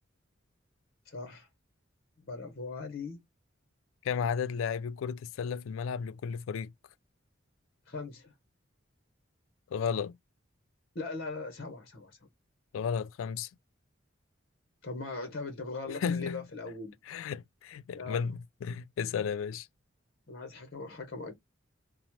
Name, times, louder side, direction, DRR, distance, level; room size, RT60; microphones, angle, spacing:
voice 1, 1.1-1.5 2.2-3.2 7.9-8.3 10.9-12.2 14.8-17.0 17.9-18.2 20.3-21.3, left 3 dB, 55° left, 0.7 m, -40 dB
voice 2, 4.0-6.7 9.7-10.2 12.7-13.5 16.0-16.4 17.1-19.7, left 6 dB, 85° left, 0.3 m, -33 dB
2.9 x 2.0 x 2.9 m
head